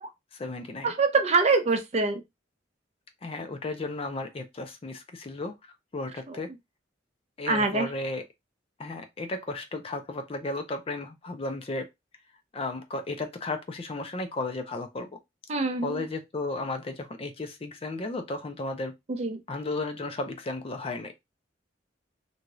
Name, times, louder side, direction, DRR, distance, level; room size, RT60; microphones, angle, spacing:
voice 1, 0.3-0.9 3.2-6.5 7.4-8.2 8.8-11.9 12.5-15.1 15.8-18.9 19.5-21.1, left 2 dB, 30° left, 0.4 m, -34 dB
voice 2, 0.8-2.2 6.3-6.4 7.5-7.9 15.5-16.1 19.1-19.4, right 4 dB, 35° right, 0.5 m, -25 dB
2.6 x 2.3 x 3.0 m
head